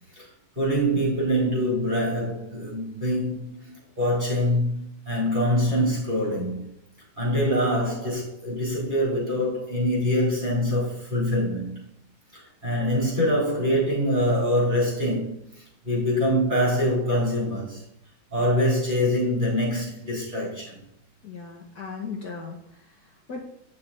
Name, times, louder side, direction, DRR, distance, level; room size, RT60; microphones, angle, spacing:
voice 1, 0.6-6.6 7.2-11.8 12.3-15.4 15.8-17.8 18.3-20.8, equal, 20° right, -6 dB, 4.1 m, -24 dB
voice 2, 21.2-23.4, left 5 dB, 50° left, -1 dB, 1.6 m, -38 dB
9.5 x 6.8 x 4.3 m, 0.74 s
omnidirectional pair, 2.3 m